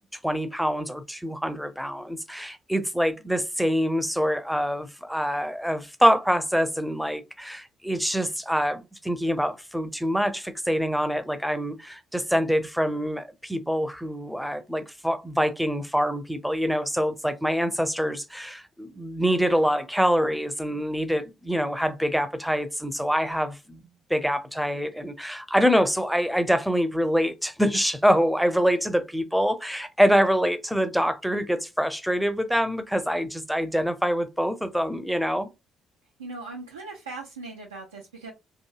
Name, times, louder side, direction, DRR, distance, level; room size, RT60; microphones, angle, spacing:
voice 1, 0.2-35.5, equal, ahead, 0.5 m, -25 dB
voice 2, 36.2-38.3, right 3 dB, 90° right, 0.4 m, -39 dB
2.8 x 2.5 x 2.3 m
hypercardioid pair, 45°, 0 cm